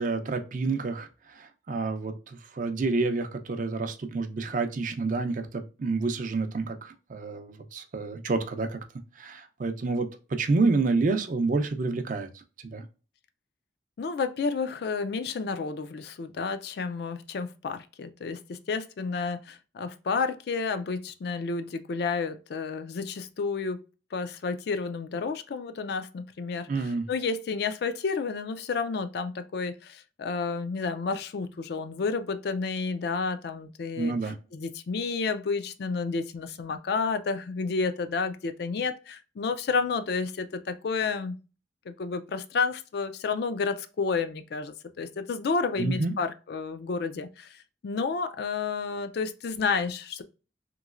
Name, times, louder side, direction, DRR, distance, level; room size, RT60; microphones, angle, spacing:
voice 1, 0.0-8.8 9.2-12.3 12.6-12.8 26.7-27.1 34.0-34.4 45.8-46.1, right 3 dB, 45° right, 0.5 m, -29 dB
voice 2, 14.0-23.8 24.1-34.1 34.5-41.4 41.9-50.2, left 4 dB, 60° left, 0.4 m, -31 dB
3.0 x 3.0 x 2.4 m
head